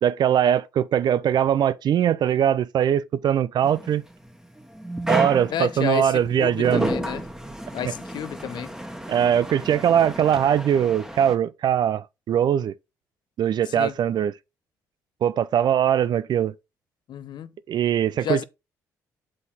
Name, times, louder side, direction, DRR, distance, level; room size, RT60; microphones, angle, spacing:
voice 1, 0.0-4.0 5.1-6.9 7.8-7.9 9.1-12.7 13.4-14.3 15.2-16.5 17.7-18.4, right 9 dB, 55° right, 0.5 m, -21 dB
sound 1, 3.6-11.3, right 1 dB, 5° right, 1.4 m, -32 dB
voice 2, 5.5-7.2 7.7-8.7 13.8-13.9 17.1-17.5 18.2-18.4, left 10 dB, 60° left, 0.6 m, -30 dB
7.7 x 4.0 x 4.1 m
hypercardioid pair, 50°, 9 cm